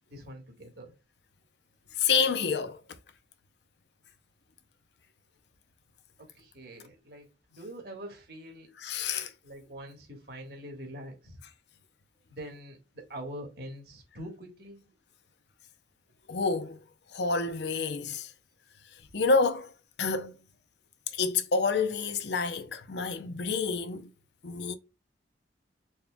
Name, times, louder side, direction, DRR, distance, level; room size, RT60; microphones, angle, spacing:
voice 1, 0.1-0.9 6.2-8.7 9.4-11.4 12.3-14.9, right 1 dB, 55° right, 1.5 m, -44 dB
voice 2, 2.0-2.8 8.8-9.3 16.3-16.8 17.1-18.3 19.1-19.7 20.0-20.4 21.1-24.1 24.4-24.7, left 4 dB, 70° left, 0.6 m, -28 dB
4.2 x 3.5 x 2.2 m
head